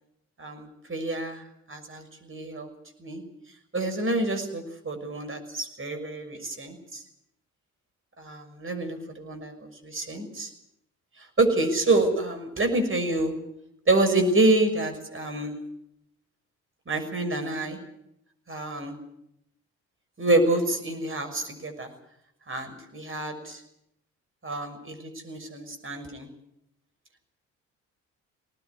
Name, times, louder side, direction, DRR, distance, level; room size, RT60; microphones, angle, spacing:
voice 1, 0.4-1.4 1.7-2.7 3.0-3.2 3.7-7.0 8.2-10.5 11.4-13.4 13.9-15.6 16.9-17.8 18.5-19.0 20.2-21.9 22.5-23.6 24.4-26.3, right 2 dB, 35° right, 7 dB, 6.3 m, -27 dB
20.5 x 19.0 x 9.7 m, 0.81 s
hypercardioid pair, 50°, 38 cm